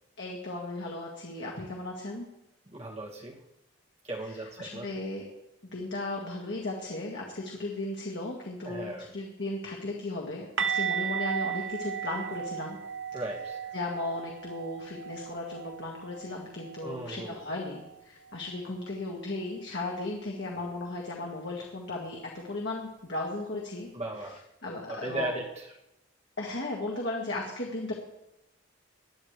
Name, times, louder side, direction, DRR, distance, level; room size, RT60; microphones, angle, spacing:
voice 1, 0.2-2.3 4.6-5.2 5.7-10.5 10.7-12.8 13.7-23.9 24.6-25.3 26.4-27.9, left 2 dB, 55° left, -2 dB, 1.8 m, -36 dB
voice 2, 2.7-3.4 4.0-4.9 8.6-9.1 13.1-13.7 16.8-17.4 23.9-24.4 24.9-25.7, right 1 dB, 30° right, -3 dB, 2.4 m, -37 dB
sound 1, 10.6-16.4 16.6-16.9 17.2-17.4 20.6-20.7, right 8 dB, 60° right, 0.8 m, -35 dB
19.5 x 12.0 x 3.4 m, 0.91 s
head